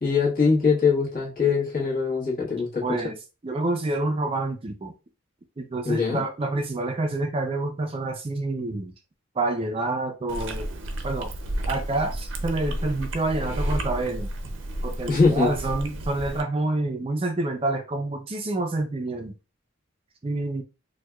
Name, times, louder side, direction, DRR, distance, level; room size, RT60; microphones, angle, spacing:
voice 1, 0.0-3.0 5.8-6.2 15.1-15.5, left 5 dB, 45° left, -5 dB, 1.3 m, -22 dB
voice 2, 2.8-3.2 3.4-4.9 5.6-8.9 9.4-10.7 11.0-11.3 11.7-14.3 14.8-19.3 20.2-20.6, right 2 dB, 30° right, 5 dB, 0.4 m, -28 dB
Chewing mastication, 10.3-16.4, right 1 dB, 75° right, 0.6 m, -31 dB
4.4 x 2.2 x 2.3 m, 0.30 s
head